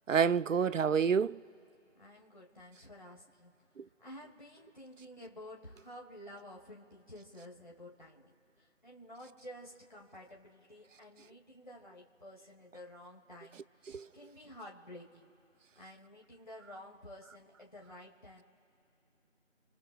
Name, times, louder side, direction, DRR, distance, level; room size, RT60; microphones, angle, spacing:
voice 1, 0.1-1.4 3.8-3.9 13.9-14.1, right 6 dB, 80° right, 0.5 m, -28 dB
voice 2, 2.0-3.5 4.0-8.3 8.6-13.6 14.1-15.3 15.8-18.4, left 1 dB, 40° left, 2.3 m, -51 dB
29.0 x 14.5 x 2.4 m
figure-of-eight pair, 175°, 38 cm